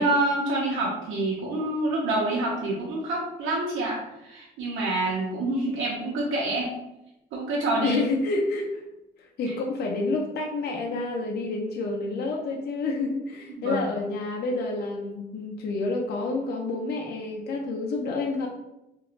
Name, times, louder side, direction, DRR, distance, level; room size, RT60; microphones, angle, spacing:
voice 1, 0.0-6.7 7.3-8.0 13.6-13.9, right 2 dB, 85° right, -4 dB, 0.6 m, -27 dB
voice 2, 7.8-8.8 9.2-18.5, left 3 dB, 55° left, 0 dB, 0.5 m, -29 dB
2.8 x 2.2 x 2.4 m, 0.91 s
cardioid pair, 90°, 20 cm